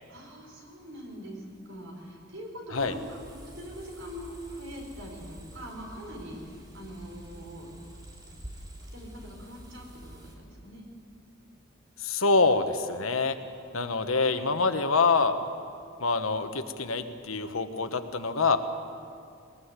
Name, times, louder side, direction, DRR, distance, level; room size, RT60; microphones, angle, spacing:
voice 1, 0.1-7.7 8.9-10.9, equal, 65° right, 1 dB, 4.8 m, -43 dB
sound 1, 2.7-10.3, right 1 dB, 20° right, 2.6 m, -47 dB
voice 2, 12.0-13.4 13.7-15.3 16.0-18.6, left 4 dB, 90° left, 8 dB, 1.3 m, -25 dB
20.5 x 19.5 x 8.3 m, 2.4 s
head